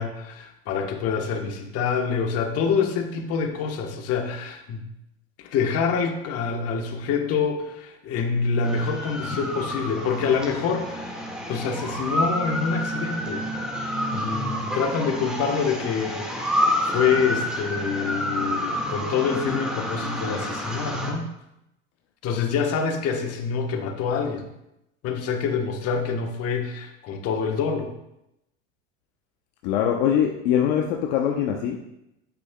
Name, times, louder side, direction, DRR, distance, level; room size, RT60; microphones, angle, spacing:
voice 1, 0.0-4.9 5.4-13.4 14.1-21.3 22.2-24.5 25.0-27.9, left 6 dB, 50° left, 4 dB, 1.1 m, -26 dB
sound 1, 8.6-21.1, equal, 5° right, 1.7 m, -29 dB
voice 2, 29.6-31.8, left 9 dB, 65° left, 2 dB, 0.8 m, -22 dB
8.5 x 6.4 x 2.2 m, 0.86 s
supercardioid pair, 100°, 32 cm